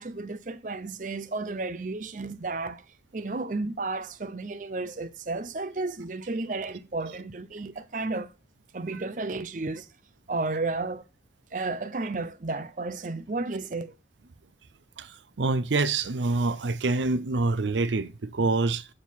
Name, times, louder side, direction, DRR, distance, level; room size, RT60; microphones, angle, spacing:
voice 1, 0.0-2.8 3.1-8.3 8.7-9.9 10.3-11.0 11.5-13.9, right 3 dB, 45° right, 0.6 m, -32 dB
voice 2, 15.0-18.9, right 3 dB, 90° right, 0.6 m, -26 dB
7.3 x 6.5 x 5.6 m
head